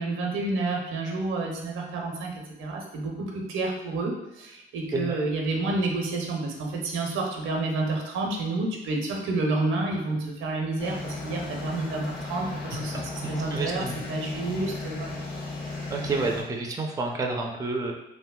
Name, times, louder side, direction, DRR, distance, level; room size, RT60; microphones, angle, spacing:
voice 1, 0.0-13.8 14.1-15.2, right 2 dB, 85° right, 0 dB, 0.7 m, -29 dB
sound 1, 10.8-16.4, left 2 dB, 50° left, 1.4 m, -35 dB
voice 2, 13.2-14.1 15.9-17.9, right 3 dB, 15° right, 1 dB, 0.4 m, -30 dB
3.1 x 2.7 x 2.2 m, 0.97 s
cardioid pair, 90°, 20 cm